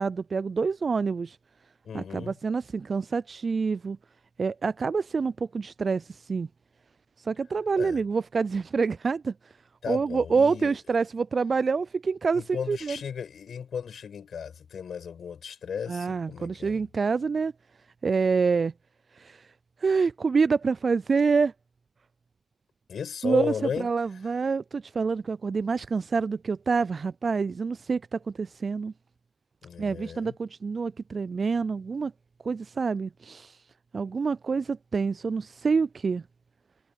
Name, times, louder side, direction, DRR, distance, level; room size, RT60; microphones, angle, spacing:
voice 1, 0.0-1.4 1.9-4.0 4.4-6.5 7.2-9.3 9.9-13.0 15.9-17.5 18.0-18.7 19.2-19.5 19.8-21.5 23.2-28.9 29.8-32.1 32.4-33.6 33.9-36.2, right 5 dB, 45° right, 0.4 m, -27 dB
voice 2, 1.8-2.3 7.8-8.0 9.8-10.8 12.3-16.8 22.9-23.9 29.6-30.3, left 7 dB, 60° left, 6.8 m, -35 dB
supercardioid pair, 55°, 0 cm